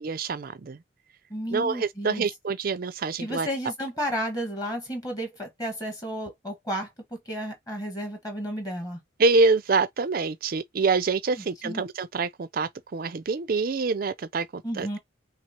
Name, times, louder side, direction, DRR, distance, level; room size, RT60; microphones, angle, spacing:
voice 1, 0.0-0.8 1.5-3.5 9.2-14.9, right 4 dB, 45° right, 0.4 m, -26 dB
voice 2, 1.3-2.3 3.2-9.0 11.4-11.8 14.6-15.0, equal, 20° left, 1.3 m, -32 dB
5.8 x 2.0 x 4.3 m
head